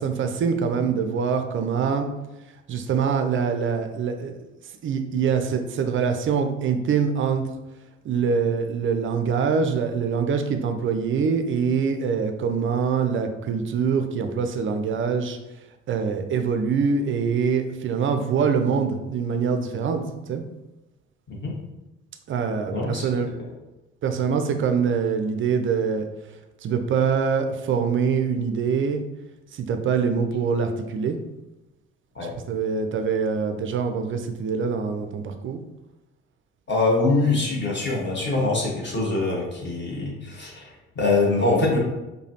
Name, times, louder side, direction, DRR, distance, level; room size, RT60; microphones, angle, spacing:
voice 1, 0.0-2.1 2.7-4.3 4.8-7.4 8.0-15.4 15.9-20.0 20.3-20.4 22.3-23.3 24.0-26.1 26.6-29.0 29.5-31.2 32.3-35.6, right 6 dB, 35° right, 7 dB, 0.5 m, -24 dB
voice 2, 22.7-23.0 32.1-32.3 36.7-41.8, left 3 dB, 30° left, -3 dB, 1.5 m, -23 dB
4.8 x 2.3 x 2.8 m, 1.0 s
figure-of-eight pair, 50°, 36 cm